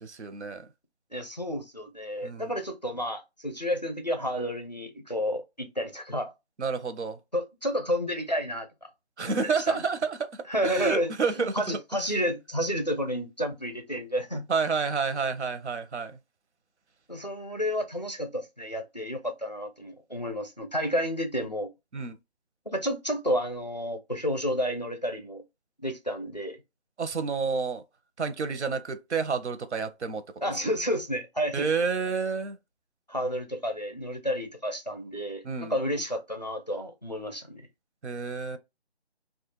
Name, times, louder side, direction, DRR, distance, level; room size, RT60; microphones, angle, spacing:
voice 1, 0.0-0.7 2.2-2.5 6.6-7.2 9.2-11.8 14.5-16.2 21.9-22.2 27.0-27.8 28.2-30.2 31.5-32.6 35.4-35.8 38.0-38.6, right 5 dB, 90° right, 0.7 m, -29 dB
voice 2, 1.1-6.3 7.3-8.9 9.2-9.8 10.5-14.5 17.1-21.7 22.7-25.4 25.8-26.6 30.4-31.7 33.1-37.7, equal, 40° left, 0.4 m, -31 dB
2.3 x 2.2 x 3.0 m
figure-of-eight pair, 180°, 33 cm